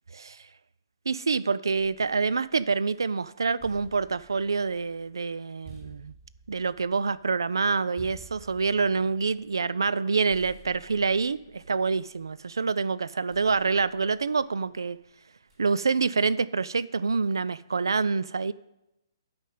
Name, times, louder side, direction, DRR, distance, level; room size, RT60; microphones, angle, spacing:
voice 1, 0.1-0.5 1.1-6.1 6.5-15.0 15.6-18.5, right 4 dB, 65° right, 0.4 m, -27 dB
sound 1, 1.7-2.9 3.3-10.0 10.3-12.5 13.3-14.8 15.5-15.9, right 4 dB, 25° right, 3.2 m, -53 dB
9.0 x 5.2 x 7.5 m
figure-of-eight pair, 125°, 2 cm